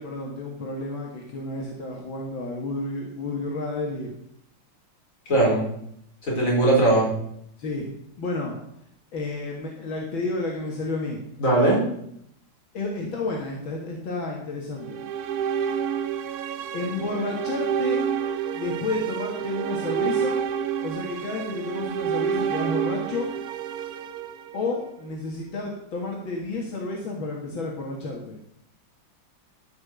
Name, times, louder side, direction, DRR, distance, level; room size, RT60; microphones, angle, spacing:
voice 1, 0.0-4.1 7.6-7.9 8.2-8.6 9.1-11.2 12.7-15.0 16.7-18.0 18.5-20.4 20.8-23.3 24.5-28.4, left 3 dB, 75° left, -1 dB, 2.6 m, -31 dB
voice 2, 5.3-5.7 6.3-7.1 11.4-11.8, right 2 dB, 40° left, -3 dB, 4.8 m, -19 dB
sound 1, 14.8-25.0, right 8 dB, 65° right, 1.0 m, -29 dB
13.5 x 5.8 x 6.9 m, 0.73 s
omnidirectional pair, 2.2 m